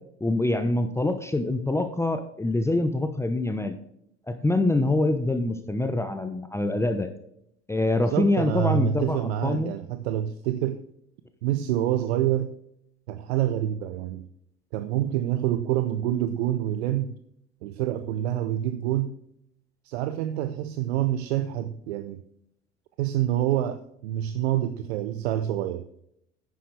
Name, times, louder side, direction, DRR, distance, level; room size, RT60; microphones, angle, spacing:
voice 1, 0.2-3.7 4.3-7.1 7.7-9.7, left 2 dB, 10° left, 0.9 m, -25 dB
voice 2, 8.1-10.8 11.4-12.5 13.1-14.3 14.7-17.1 17.6-19.1 19.8-22.2 23.0-25.8, right 12 dB, 70° right, 0.7 m, -27 dB
10.0 x 9.4 x 3.3 m
hypercardioid pair, 75°, 33 cm